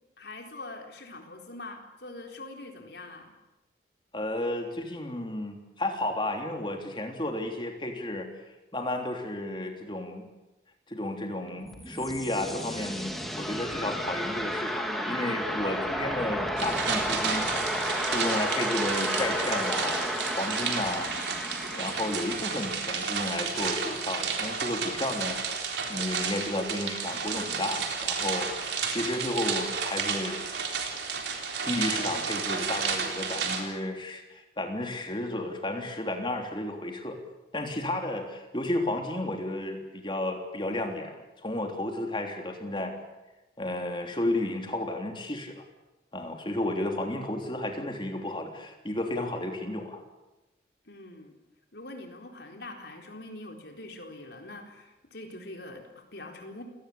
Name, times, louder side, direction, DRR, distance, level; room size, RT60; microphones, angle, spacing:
voice 1, 0.2-3.3 50.9-51.3 51.7-56.6, left 2 dB, 65° left, 3 dB, 4.1 m, -43 dB
voice 2, 4.1-8.3 8.7-10.3 10.9-20.0 20.3-21.1 21.7-25.4 25.9-30.7 31.6-37.2 37.5-41.2 41.4-42.9 43.6-45.6 46.1-50.0, left 1 dB, 25° left, 3 dB, 3.3 m, -32 dB
sound 1, 11.5-24.3, equal, ahead, 2.6 m, -33 dB
sound 2, 16.6-33.6, right 6 dB, 70° right, 3.8 m, -32 dB
28.5 x 18.5 x 8.6 m, 1.0 s
head